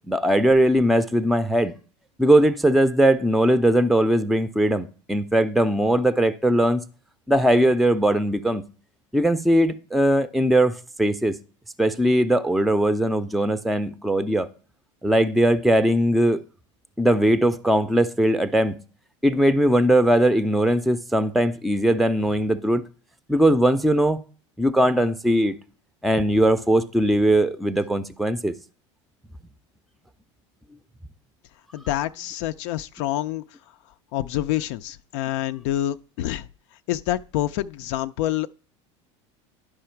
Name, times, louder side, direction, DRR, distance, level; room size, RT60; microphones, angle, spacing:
voice 1, 0.1-1.7 2.2-6.8 7.3-8.6 9.1-11.4 11.8-14.5 15.0-16.4 17.0-18.8 19.2-22.8 23.3-24.2 24.6-25.5 26.0-28.5, right 1 dB, ahead, 0.5 m, -20 dB
voice 2, 31.7-33.6 34.1-38.5, left 13 dB, 70° left, 0.4 m, -27 dB
11.0 x 4.8 x 4.5 m
hypercardioid pair, 100°, 15 cm